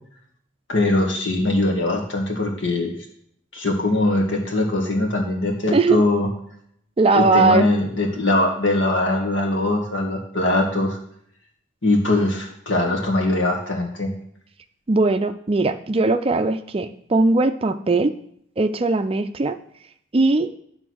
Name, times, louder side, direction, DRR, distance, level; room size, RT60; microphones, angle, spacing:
voice 1, 0.7-2.9 3.5-6.3 7.1-11.0 11.8-14.1, left 2 dB, 80° left, 1 dB, 1.9 m, -21 dB
voice 2, 5.7-6.0 7.0-7.7 14.9-18.1 18.6-19.6 20.1-20.5, right 3 dB, 30° right, 9 dB, 0.4 m, -19 dB
10.5 x 3.8 x 6.2 m, 0.69 s
head